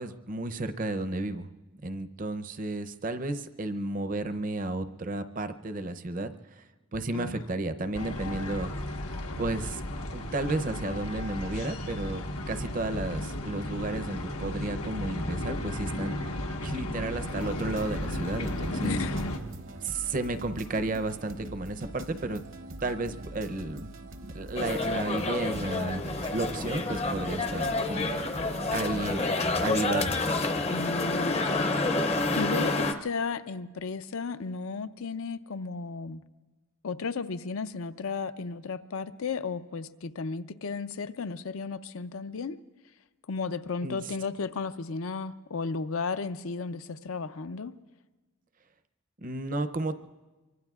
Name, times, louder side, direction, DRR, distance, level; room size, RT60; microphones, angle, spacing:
voice 1, 0.0-6.6 6.9-8.7 9.4-9.8 10.1-16.2 16.6-19.0 19.8-22.4 22.8-23.9 24.3-28.2 28.7-29.2 29.6-30.2 43.8-44.0 49.2-49.9, right 2 dB, 40° right, 10 dB, 0.6 m, -32 dB
sound 1, 7.9-19.4, left 1 dB, 90° left, 1.3 m, -34 dB
voice 2, 8.0-8.6 18.8-19.3 30.7-31.7 32.4-36.2 36.8-42.6 43.3-47.7, left 4 dB, 70° left, 11 dB, 0.5 m, -34 dB
sound 2, 17.3-29.2, right 1 dB, 60° right, 0.9 m, -43 dB
sound 3, 24.6-32.9, left 2 dB, 30° left, 0.6 m, -29 dB
25.0 x 24.0 x 2.4 m, 1.2 s
head